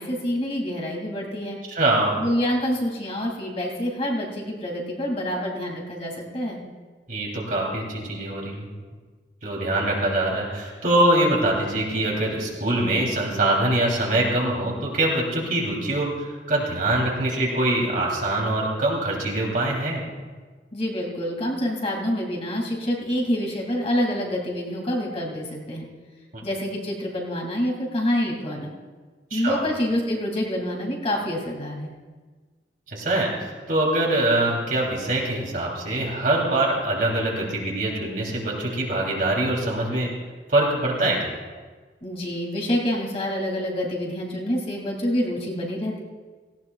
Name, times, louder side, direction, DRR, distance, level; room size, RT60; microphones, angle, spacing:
voice 1, 0.0-1.6 2.2-6.6 20.7-25.9 26.4-28.7 29.3-31.9 42.0-46.0, equal, 35° left, -1 dB, 2.5 m, -27 dB
voice 2, 1.7-2.2 7.1-8.7 9.4-20.0 29.3-29.6 32.9-40.1 40.5-41.3, right 1 dB, 50° right, -2 dB, 3.2 m, -23 dB
18.0 x 16.5 x 2.4 m, 1.4 s
head